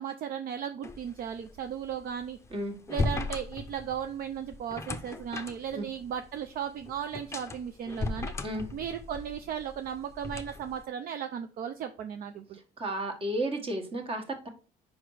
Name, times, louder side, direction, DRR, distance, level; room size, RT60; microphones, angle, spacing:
voice 1, 0.0-2.4 2.9-8.3 8.7-12.6, right 8 dB, 60° right, 8 dB, 0.5 m, -36 dB
sound 1, 0.8-10.8, left 3 dB, 15° left, 0.6 m, -37 dB
voice 2, 12.8-14.5, right 1 dB, 35° right, 4 dB, 1.6 m, -32 dB
5.3 x 4.9 x 4.8 m, 0.36 s
cardioid pair, 110°, 17 cm